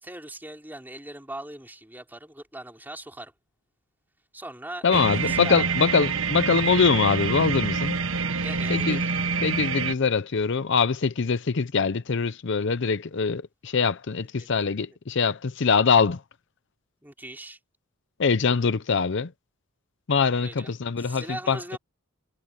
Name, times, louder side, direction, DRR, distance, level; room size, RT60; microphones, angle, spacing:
voice 1, 0.0-3.3 4.3-5.7 8.4-9.1 17.0-17.6 20.4-21.8, right 1 dB, 10° right, 4.0 m, -40 dB
voice 2, 4.8-7.9 8.7-9.0 9.4-16.2 18.2-19.3 20.1-21.8, left 5 dB, 55° left, 0.6 m, -23 dB
sound 1, 4.9-9.9, right 5 dB, 70° right, 1.2 m, -27 dB
head